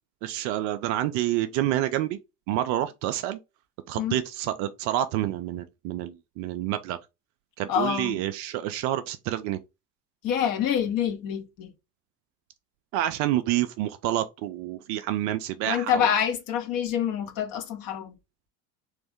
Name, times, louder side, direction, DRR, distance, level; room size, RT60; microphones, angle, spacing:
voice 1, 0.2-2.2 2.5-3.4 3.9-7.0 7.6-9.6 12.9-16.1, right 13 dB, 40° right, 0.5 m, -28 dB
voice 2, 7.7-8.2 10.2-11.7 15.6-18.1, left 9 dB, 45° left, 1.0 m, -26 dB
3.4 x 3.2 x 3.5 m
figure-of-eight pair, 70°, 48 cm